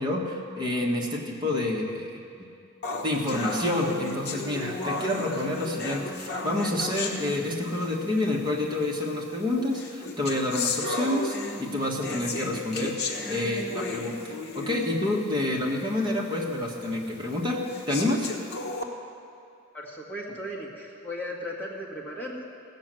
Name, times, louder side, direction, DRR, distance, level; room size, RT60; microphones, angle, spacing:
voice 1, 0.0-2.2 3.0-18.3, left 1 dB, 20° right, -2 dB, 1.6 m, -28 dB
sound 1, 2.8-8.0 8.8-8.9 9.7-15.0 15.4-15.5 16.0-16.1 16.8-16.9 17.7-18.8, left 3 dB, 55° left, 1.1 m, -34 dB
voice 2, 19.7-22.5, equal, 10° left, -5 dB, 1.8 m, -36 dB
15.5 x 6.6 x 7.6 m, 2.4 s
head